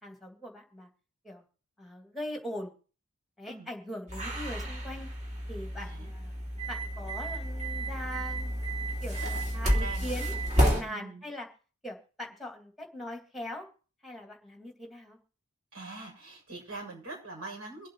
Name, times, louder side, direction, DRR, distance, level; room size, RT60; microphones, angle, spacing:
voice 1, 0.0-0.9 1.2-1.4 1.8-2.7 3.4-5.1 5.5-6.3 6.7-8.5 9.0-11.5 11.8-13.7 14.0-15.2, left 1 dB, ahead, 2 dB, 2.4 m, -41 dB
sound 1, 4.1-10.8, equal, 30° right, 2.8 m, -31 dB
voice 2, 5.8-6.1 9.1-10.2 10.8-11.2 15.7-17.9, right 2 dB, 90° right, 0 dB, 7.1 m, -43 dB
24.5 x 8.4 x 3.0 m, 0.37 s
head